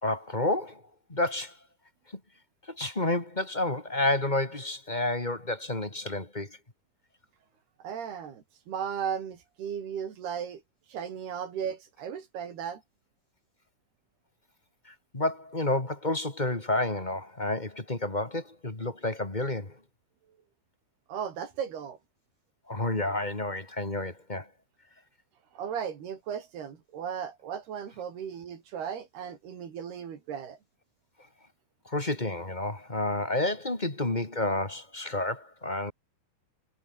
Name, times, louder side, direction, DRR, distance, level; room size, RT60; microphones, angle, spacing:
voice 1, 0.0-0.8 1.1-1.5 2.7-6.6 15.1-19.7 22.7-24.5 31.9-35.9, left 2 dB, 15° left, 2.4 m, -30 dB
voice 2, 7.8-10.6 10.9-12.8 21.1-22.0 25.5-30.6, right 8 dB, 85° right, 5.2 m, -36 dB
omnidirectional pair, 4.4 m